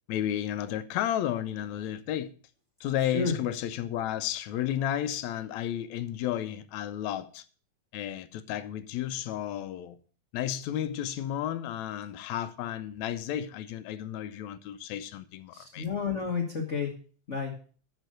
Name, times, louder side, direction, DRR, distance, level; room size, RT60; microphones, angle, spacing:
voice 1, 0.1-2.3 2.8-7.5 7.9-10.0 10.3-15.9, left 11 dB, 75° left, 1.9 m, -32 dB
voice 2, 3.0-3.4 15.5-16.9 17.3-17.5, left 5 dB, 50° left, 0.8 m, -31 dB
9.2 x 6.6 x 6.5 m
omnidirectional pair, 3.5 m